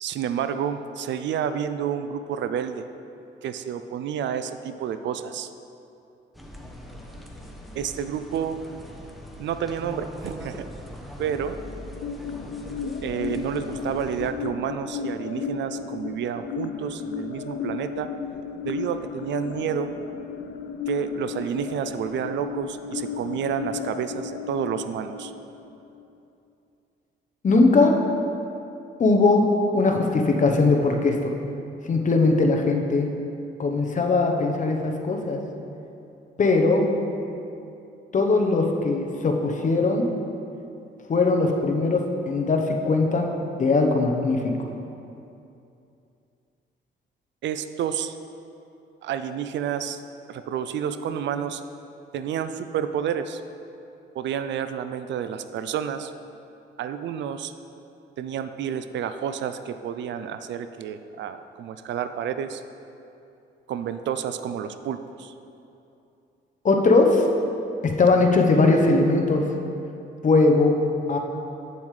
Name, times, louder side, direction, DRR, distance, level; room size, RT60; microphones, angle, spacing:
voice 1, 0.0-2.9 3.4-5.5 7.8-8.6 9.4-10.7 11.2-11.6 13.0-18.1 18.6-19.9 20.9-25.3 47.4-48.2 49.0-50.0 50.3-51.6 52.1-53.4 54.1-56.1 56.8-57.5 58.2-62.6 63.7-65.3, right 8 dB, 65° right, 10 dB, 0.4 m, -30 dB
sound 1, 6.3-14.3, equal, ahead, 0.8 m, -41 dB
sound 2, 11.2-26.2, left 6 dB, 65° left, 0.5 m, -34 dB
voice 2, 27.4-28.0 29.0-31.3 31.8-33.1 33.6-35.4 36.4-36.8 38.1-40.1 41.1-43.3 43.6-44.7 66.6-67.2 67.8-69.4 70.2-70.7 71.1-71.2, left 3 dB, 40° left, 2 dB, 0.8 m, -20 dB
8.3 x 7.0 x 3.2 m, 2.7 s
cardioid pair, 90°, 20 cm